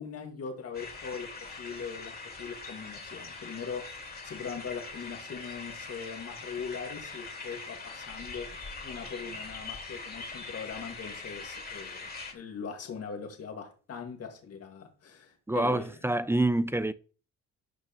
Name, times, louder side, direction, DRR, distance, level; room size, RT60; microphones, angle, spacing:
voice 1, 0.0-15.9, left 6 dB, 50° left, 1.9 m, -41 dB
sound 1, 0.7-12.3, left 3 dB, 30° left, 2.8 m, -42 dB
voice 2, 15.5-16.9, right 1 dB, 10° right, 0.4 m, -27 dB
12.0 x 6.2 x 3.0 m
cardioid pair, 90°, 30 cm